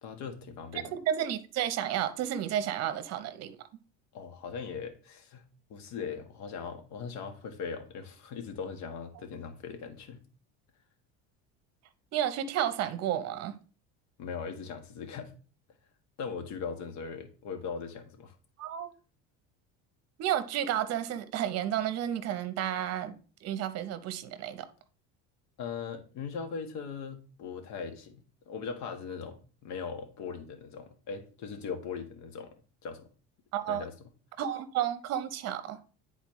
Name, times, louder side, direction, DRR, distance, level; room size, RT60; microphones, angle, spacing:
voice 1, 0.0-0.9 4.1-10.2 14.2-15.3 16.2-18.3 25.6-32.5 32.8-33.1 33.7-33.9, left 6 dB, 60° left, 1.3 m, -39 dB
voice 2, 0.9-3.6 12.1-13.6 18.6-18.9 20.2-23.1 23.4-24.7 33.5-33.8 34.4-35.8, right 10 dB, 50° right, 0.8 m, -31 dB
10.0 x 4.1 x 3.1 m
cardioid pair, 130°, 32 cm